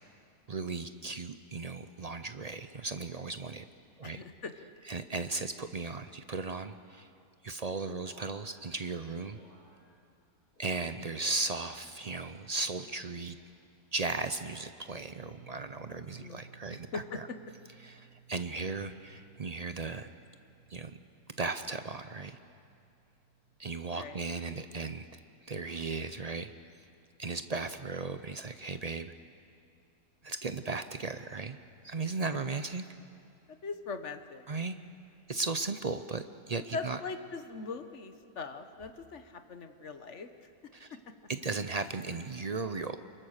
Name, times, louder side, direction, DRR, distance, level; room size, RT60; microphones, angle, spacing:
voice 1, 0.5-3.7 4.0-4.2 4.8-7.1 7.4-9.4 10.6-13.4 13.9-17.3 17.8-20.1 20.7-20.9 21.4-22.4 23.6-25.1 25.4-26.5 27.2-29.1 30.2-31.6 31.8-32.8 34.5-34.8 35.3-37.0 40.7-41.0 41.3-43.0, right 3 dB, 55° right, 10 dB, 0.4 m, -36 dB
voice 2, 4.0-4.5 16.2-16.4 16.7-17.2 23.9-24.2 33.6-34.5 36.7-40.3, left 4 dB, 50° left, 8 dB, 1.4 m, -40 dB
sound 1, 8.0-10.2 10.5-11.4 11.9-12.6 13.2-13.6 14.5-14.9 15.8-16.1, equal, 70° left, 7.0 m, -63 dB
sound 2, 15.1-25.2, right 7 dB, 30° right, 4.7 m, -59 dB
28.0 x 22.5 x 6.5 m, 2.5 s
omnidirectional pair, 1.6 m